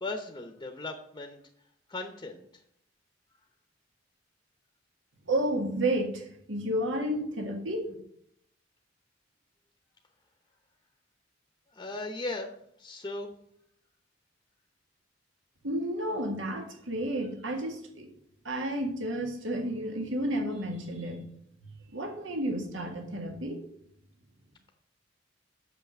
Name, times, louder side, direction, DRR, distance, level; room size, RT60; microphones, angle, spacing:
voice 1, 0.0-1.4 1.9-2.4 11.7-12.5 12.8-13.3, left 2 dB, 20° left, 4 dB, 0.8 m, -37 dB
voice 2, 5.3-8.0 15.6-18.1 18.5-21.2 21.9-23.6, right 1 dB, 85° right, 3 dB, 1.9 m, -31 dB
6.7 x 5.8 x 6.6 m, 0.68 s
head